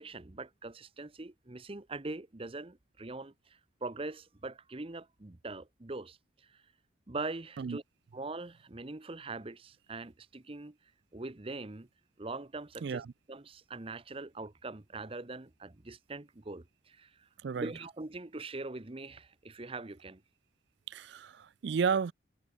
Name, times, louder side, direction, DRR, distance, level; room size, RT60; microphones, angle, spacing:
voice 1, 0.0-3.3 3.8-6.2 6.5-6.6 7.1-7.8 8.1-10.8 11.1-11.9 12.2-13.0 13.3-17.3 17.5-20.2, right 3 dB, 30° right, 0.8 m, -42 dB
voice 2, 20.9-22.1, right 6 dB, 60° right, 0.4 m, -32 dB
head